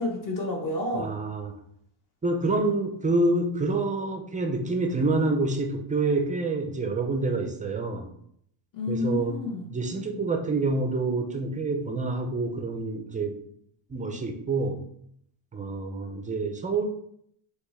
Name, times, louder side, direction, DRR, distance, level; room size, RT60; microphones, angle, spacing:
voice 1, 0.0-1.1 8.7-9.7, left 2 dB, 45° left, 0 dB, 1.1 m, -29 dB
voice 2, 0.9-1.5 2.2-8.1 8.9-9.4 9.7-13.4 13.9-14.8 15.5-16.8, right 3 dB, 20° right, 4 dB, 0.3 m, -27 dB
5.8 x 2.9 x 3.1 m, 0.69 s
cardioid pair, 155°, 47 cm